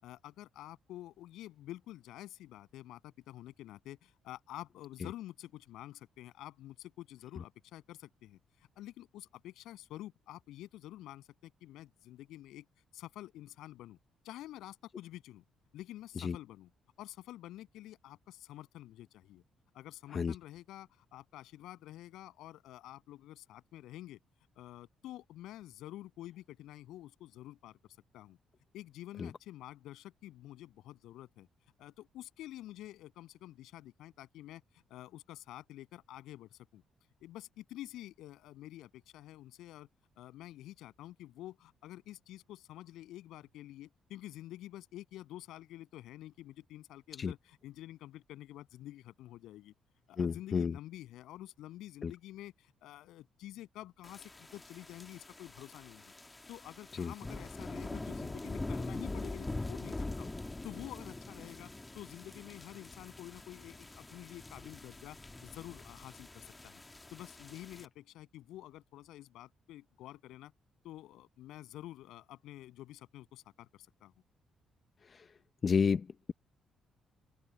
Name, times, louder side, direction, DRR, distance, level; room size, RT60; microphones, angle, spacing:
voice 1, 0.0-12.6 12.9-14.0 14.2-15.4 15.7-16.7 17.0-19.4 19.7-24.2 24.5-27.8 28.1-28.4 28.7-31.5 31.8-36.8 37.2-39.9 40.2-49.7 50.1-56.1 56.5-60.3 60.6-66.8 67.1-70.5 70.8-73.7 74.0-74.1, left 14 dB, 90° left, 7.7 m, -49 dB
voice 2, 50.2-50.7 52.0-52.1 57.0-57.1 75.6-76.3, left 6 dB, 45° left, 0.7 m, -30 dB
sound 1, 54.0-67.9, left 2 dB, 20° left, 1.7 m, -44 dB
open air
cardioid pair, 90°, 0 cm